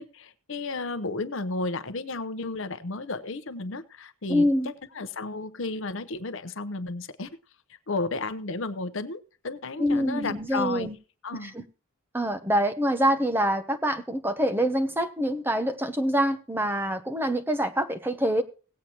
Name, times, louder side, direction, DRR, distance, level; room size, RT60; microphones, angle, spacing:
voice 1, 0.0-7.3 7.9-10.9 11.2-11.5, left 3 dB, 60° left, 13 dB, 0.8 m, -33 dB
voice 2, 4.3-4.7 9.8-10.9 11.4-11.6 12.1-18.4, equal, 10° right, 8 dB, 0.9 m, -25 dB
18.0 x 8.4 x 2.9 m, 0.34 s
head